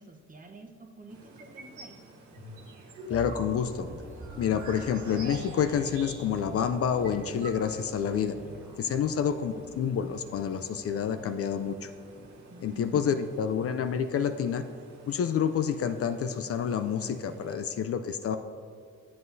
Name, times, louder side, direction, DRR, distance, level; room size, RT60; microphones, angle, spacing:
voice 1, 0.0-2.0 8.9-9.1 12.5-13.2, right 2 dB, 25° right, 2 dB, 0.9 m, -48 dB
sound 1, 1.1-17.6, right 2 dB, 65° right, 1.5 m, -53 dB
sound 2, 1.4-2.0 2.3-6.5 6.8-6.9 7.0-8.0, right 3 dB, 90° right, 1.4 m, -44 dB
voice 2, 3.1-3.9 4.4-8.4 8.8-11.9 12.6-14.6 15.1-18.4, left 7 dB, 50° left, 9 dB, 0.4 m, -28 dB
sound 3, 3.1-13.1 13.4-13.6, equal, 5° right, 0.5 m, -47 dB
10.5 x 7.6 x 2.7 m, 2.2 s
cardioid pair, 90°, 30 cm